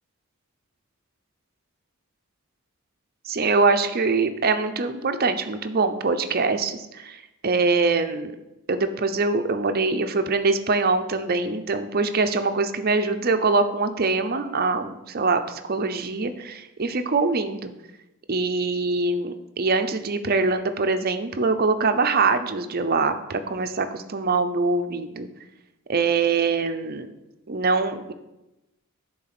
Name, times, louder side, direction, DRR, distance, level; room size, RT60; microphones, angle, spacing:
voice 1, 3.3-8.3 8.7-17.7 18.3-25.3 25.9-27.1 27.5-28.1, right 3 dB, 45° right, 8 dB, 0.6 m, -23 dB
10.5 x 4.0 x 5.9 m, 0.96 s
head